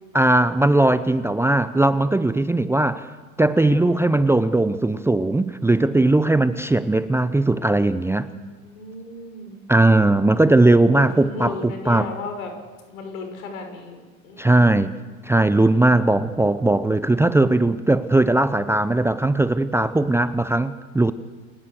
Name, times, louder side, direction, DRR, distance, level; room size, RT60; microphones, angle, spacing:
voice 1, 0.1-3.1 3.4-8.3 9.7-12.1 14.4-14.9 15.2-21.1, right 2 dB, 5° right, 14 dB, 0.7 m, -19 dB
voice 2, 8.1-9.7 10.9-12.6 12.9-14.8, left 3 dB, 70° left, 4 dB, 6.4 m, -36 dB
28.5 x 17.0 x 6.6 m, 1.4 s
figure-of-eight pair, 80°, 42 cm